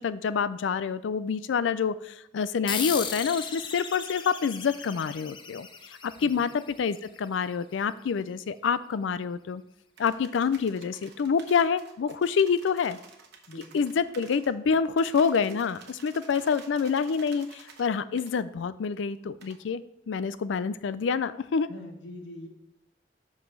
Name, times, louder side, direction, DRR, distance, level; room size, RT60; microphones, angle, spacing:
voice 1, 0.0-9.6 10.0-13.0 13.7-21.7, left 6 dB, 90° left, 15 dB, 0.4 m, -27 dB
sound 1, 2.7-7.6, left 6 dB, 25° left, 0.6 m, -37 dB
voice 2, 6.2-6.5 13.5-13.8 21.7-22.5, left 1 dB, 75° left, 1 dB, 1.3 m, -43 dB
sound 2, 10.0-14.5 15.0-17.9 18.2-18.3 19.4-19.6, right 5 dB, 65° right, 1.1 m, -51 dB
5.3 x 5.1 x 5.9 m, 0.81 s
head